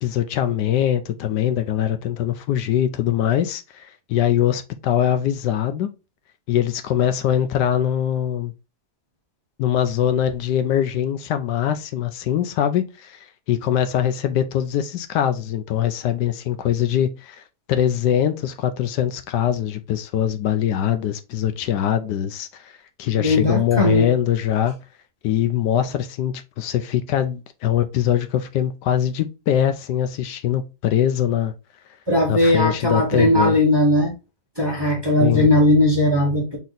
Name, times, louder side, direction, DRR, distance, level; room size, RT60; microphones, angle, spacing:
voice 1, 0.0-5.9 6.5-8.5 9.6-17.4 17.7-24.8 25.2-31.5 32.3-33.6 35.2-35.5, left 10 dB, 75° left, 1.2 m, -22 dB
voice 2, 23.2-24.1 32.1-34.1 34.6-36.6, left 1 dB, 20° right, 0.9 m, -18 dB
4.2 x 3.0 x 3.9 m
omnidirectional pair, 1.9 m